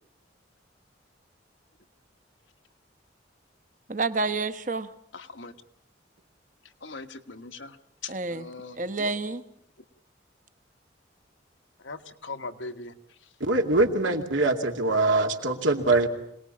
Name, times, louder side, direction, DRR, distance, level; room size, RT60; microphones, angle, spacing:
voice 1, 3.9-4.9 8.1-8.5 8.8-9.4, right 3 dB, 40° right, 11 dB, 1.0 m, -29 dB
voice 2, 5.1-5.5 6.8-7.8 8.0-9.1 11.8-12.9, left 4 dB, 80° left, 6 dB, 1.5 m, -40 dB
voice 3, 13.4-16.1, right 2 dB, 85° right, 3 dB, 2.6 m, -23 dB
26.0 x 19.0 x 8.6 m, 0.73 s
head